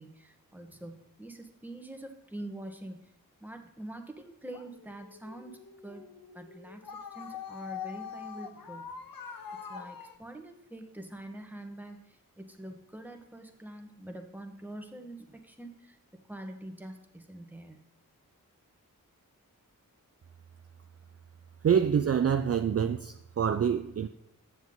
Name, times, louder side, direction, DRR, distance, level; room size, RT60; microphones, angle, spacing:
voice 1, 0.0-3.1 3.4-5.6 5.8-6.1 6.3-6.8 7.1-8.9 9.7-16.0 16.3-17.8, right 1 dB, 5° right, 1.3 m, -45 dB
sound 1, 4.5-10.2, left 7 dB, 70° left, 0.8 m, -44 dB
voice 2, 21.6-24.1, right 8 dB, 45° right, 0.4 m, -26 dB
7.9 x 7.0 x 3.8 m
cardioid pair, 40°, 35 cm